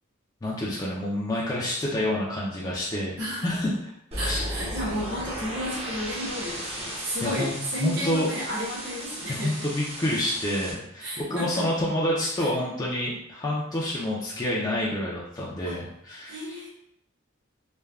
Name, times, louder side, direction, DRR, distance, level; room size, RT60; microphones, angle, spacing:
voice 1, 0.4-3.7 4.2-4.4 7.2-7.5 7.8-8.3 9.3-16.4, left 1 dB, 20° left, -5 dB, 0.4 m, -28 dB
sound 1, 4.1-10.7, equal, 30° right, 0.6 m, -35 dB
voice 2, 4.2-9.7 11.0-11.6 12.4-12.5 15.6-15.8 16.3-16.7, equal, 60° right, -6 dB, 1.0 m, -33 dB
3.2 x 2.2 x 2.3 m, 0.74 s
head